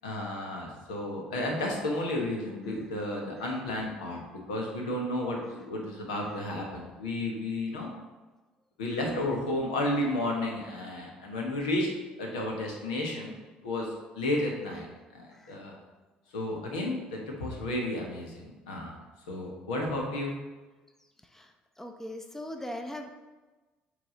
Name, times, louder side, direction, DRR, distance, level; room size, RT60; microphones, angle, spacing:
voice 1, 0.0-4.2 4.5-7.9 8.8-11.9 12.2-13.3 13.6-13.9 14.1-14.9 15.1-15.8 16.3-18.9 19.3-20.3, left 1 dB, 80° left, 0 dB, 1.2 m, -32 dB
voice 2, 21.8-23.1, left 1 dB, 10° left, 5 dB, 0.7 m, -39 dB
8.7 x 3.4 x 3.8 m, 1.2 s
hypercardioid pair, 55°, 4 cm